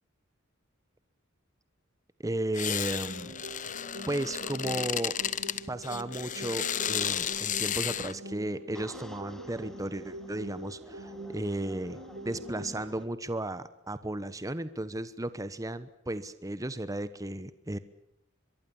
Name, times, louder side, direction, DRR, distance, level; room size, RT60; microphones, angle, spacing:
voice 1, 2.2-3.4 4.1-5.2 5.7-12.0 12.2-17.8, right 1 dB, 15° right, 14 dB, 1.1 m, -34 dB
sound 1, 2.5-8.1, left 9 dB, 40° left, 1.1 m, -33 dB
sound 2, 2.9-12.9, equal, 65° right, 5.6 m, -44 dB
sound 3, 8.7-13.1, equal, ahead, 2.4 m, -52 dB
23.5 x 23.5 x 7.3 m, 0.83 s
head